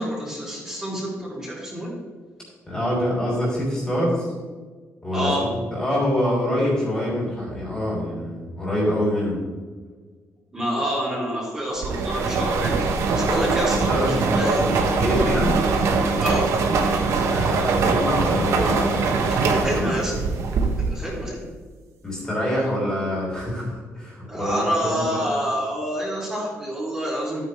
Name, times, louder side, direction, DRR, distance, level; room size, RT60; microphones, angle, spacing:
voice 1, 0.0-1.9 5.1-5.4 10.5-13.9 14.4-14.6 16.2-16.5 19.6-20.1 20.9-21.5 24.3-27.4, equal, 15° right, -7 dB, 3.0 m, -27 dB
voice 2, 2.6-4.3 5.0-5.3 5.7-9.4 13.7-15.6 17.2-20.3 21.0-21.1 22.0-25.2, left 1 dB, 15° left, -6 dB, 3.2 m, -26 dB
sound 1, 11.8-21.1, right 4 dB, 65° right, 1.2 m, -22 dB
13.0 x 9.3 x 3.3 m, 1.5 s
cardioid pair, 180°, 5 cm